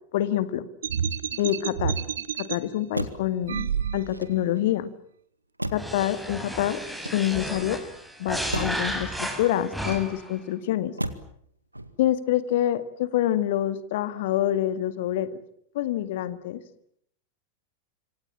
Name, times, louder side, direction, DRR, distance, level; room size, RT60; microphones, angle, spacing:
voice 1, 0.1-0.7 1.4-2.0 2.4-4.9 5.7-6.8 7.1-7.8 8.2-10.9 12.0-15.4 15.7-16.6, left 12 dB, 55° left, 13 dB, 2.0 m, -26 dB
sound 1, 0.8-2.6 3.4-4.4, right 7 dB, 65° right, 1.5 m, -29 dB
Motor vehicle (road), 1.3-2.1 2.9-3.4 4.0-4.7 5.6-6.1 6.8-7.6 8.5-8.9 9.8-10.4 11.0-11.4 11.7-12.2, right 1 dB, 85° right, 1.9 m, -35 dB
sound 2, 5.7-10.3, equal, ahead, 5.3 m, -33 dB
27.0 x 25.5 x 7.4 m, 0.67 s
figure-of-eight pair, 90°, 0 cm